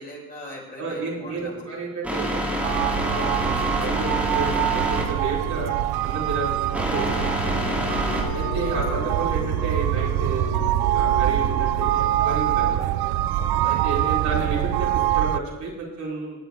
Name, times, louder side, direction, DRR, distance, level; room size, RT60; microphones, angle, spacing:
voice 1, 0.0-1.7 2.9-3.2 7.7-7.8 8.1-8.4 13.4-13.8, left 1 dB, 25° left, -3 dB, 4.5 m, -41 dB
voice 2, 0.8-2.4 3.0-7.3 8.3-10.5 10.9-12.8 13.8-16.4, right 3 dB, 50° right, -5 dB, 4.3 m, -31 dB
sound 1, 2.0-8.2, equal, 5° right, 2.2 m, -27 dB
sound 2, 2.6-15.4, right 13 dB, 85° right, 0.6 m, -24 dB
sound 3, 7.4-15.0, left 9 dB, 80° left, 1.2 m, -38 dB
18.5 x 8.9 x 3.6 m, 1.1 s
cardioid pair, 110°, 36 cm